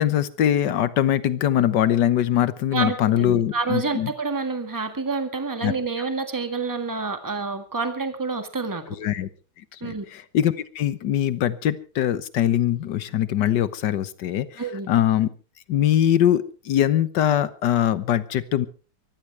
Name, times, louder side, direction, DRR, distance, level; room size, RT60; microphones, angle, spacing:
voice 1, 0.0-4.1 5.6-5.7 9.0-9.3 9.7-15.3 15.7-18.7, left 11 dB, 70° left, 16 dB, 1.5 m, -22 dB
voice 2, 2.7-8.9 9.8-10.0 14.6-14.9, right 4 dB, 10° right, 8 dB, 1.7 m, -28 dB
24.0 x 15.0 x 3.3 m, 0.35 s
omnidirectional pair, 2.0 m